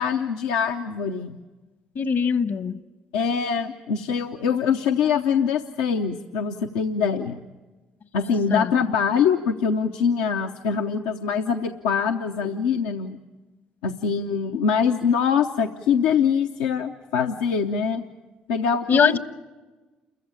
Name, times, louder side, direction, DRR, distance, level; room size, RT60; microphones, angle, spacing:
voice 1, 0.0-1.4 3.1-7.5 8.1-13.2 13.8-18.0 18.5-19.2, left 6 dB, 90° left, 4 dB, 0.7 m, -23 dB
voice 2, 1.9-2.8 8.5-8.7 18.9-19.2, left 6 dB, 60° left, 13 dB, 1.1 m, -21 dB
29.0 x 14.5 x 8.8 m, 1.3 s
hypercardioid pair, 55°, 4 cm